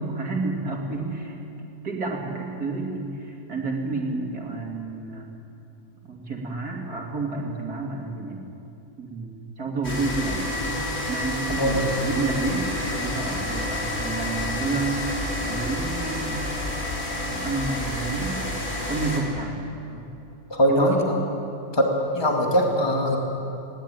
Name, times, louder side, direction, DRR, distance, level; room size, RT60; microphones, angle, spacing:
voice 1, 0.0-1.4 1.8-5.3 6.1-8.4 9.0-12.7 13.0-15.1 15.4-16.6 17.2-20.1 20.7-21.0, right 3 dB, 75° right, 0 dB, 3.4 m, -30 dB
sound 1, 9.8-19.2, left 1 dB, 50° left, 4.0 m, -29 dB
voice 2, 11.6-11.9 20.5-21.0 21.7-21.9 22.1-23.2, equal, 15° left, 0 dB, 2.5 m, -21 dB
20.5 x 18.0 x 9.5 m, 2.8 s
omnidirectional pair, 1.6 m